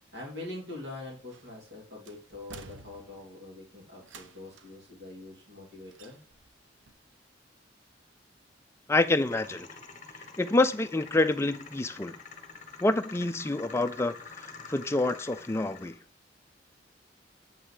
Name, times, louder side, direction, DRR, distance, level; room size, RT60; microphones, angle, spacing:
voice 1, 0.1-6.2, left 2 dB, 75° right, 2.7 m, -44 dB
sound 1, 1.3-1.7 2.1-3.4 4.0-4.8 5.9-6.6 6.9-7.0, right 4 dB, 90° right, 0.7 m, -50 dB
voice 2, 8.9-9.7 10.4-12.2 12.8-16.0, left 2 dB, 15° left, 0.4 m, -27 dB
sound 2, 9.0-16.0, left 4 dB, 40° left, 1.0 m, -47 dB
7.4 x 5.5 x 3.2 m
head